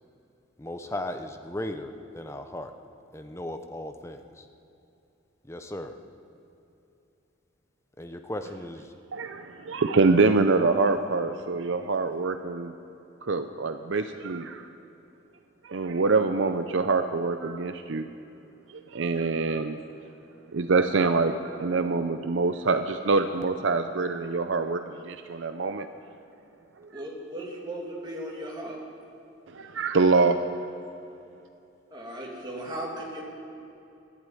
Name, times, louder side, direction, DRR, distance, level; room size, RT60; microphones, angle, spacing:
voice 1, 0.6-2.7 3.1-4.4 5.5-5.9 8.0-8.9, left 1 dB, 15° left, 6 dB, 0.7 m, -36 dB
voice 2, 9.1-12.7 13.2-14.7 15.6-18.1 18.7-19.8 20.5-25.9 26.9-27.0 29.5-30.4, right 3 dB, 70° right, 8 dB, 0.5 m, -25 dB
voice 3, 26.9-28.8 31.9-33.2, right 1 dB, 20° right, -3 dB, 2.4 m, -36 dB
12.0 x 11.5 x 9.2 m, 2.7 s
head